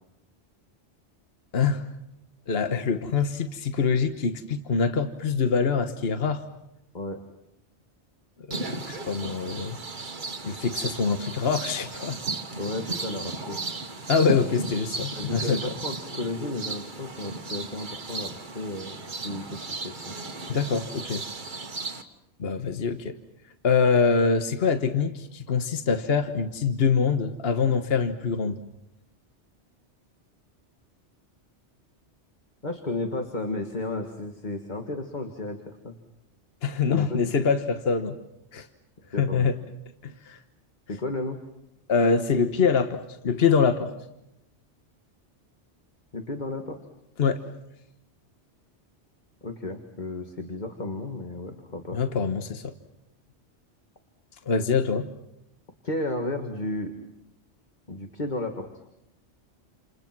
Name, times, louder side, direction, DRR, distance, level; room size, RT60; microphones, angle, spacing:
voice 1, 1.5-1.9 2.5-6.5 8.5-9.8 10.4-12.2 14.1-15.7 20.5-21.2 22.4-23.2 23.6-28.6 36.6-38.2 38.5-38.7 39.2-39.6 40.0-40.4 41.9-43.9 47.2-47.4 51.9-52.7 54.5-55.1, left 5 dB, 60° left, 8 dB, 1.4 m, -24 dB
sound 1, 8.5-22.0, right 3 dB, 45° right, 1.6 m, -35 dB
voice 2, 12.6-13.6 15.1-19.6 19.8-20.2 32.6-35.9 36.9-37.4 39.1-39.5 40.9-41.4 46.1-46.8 49.4-52.0 55.8-56.9 57.9-58.7, left 2 dB, 40° left, 4 dB, 2.1 m, -33 dB
29.0 x 29.0 x 6.1 m, 0.85 s
omnidirectional pair, 1.2 m